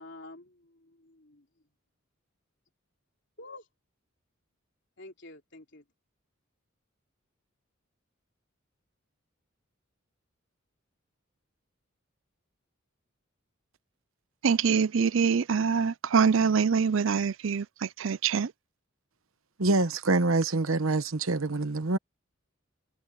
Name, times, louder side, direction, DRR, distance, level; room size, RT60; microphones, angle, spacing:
voice 1, 0.0-1.5 3.4-3.7 5.0-5.8, left 2 dB, 60° left, 3.4 m, -48 dB
voice 2, 14.4-18.5, right 6 dB, 70° right, 0.5 m, -25 dB
voice 3, 19.6-22.0, right 2 dB, 90° right, 1.1 m, -25 dB
head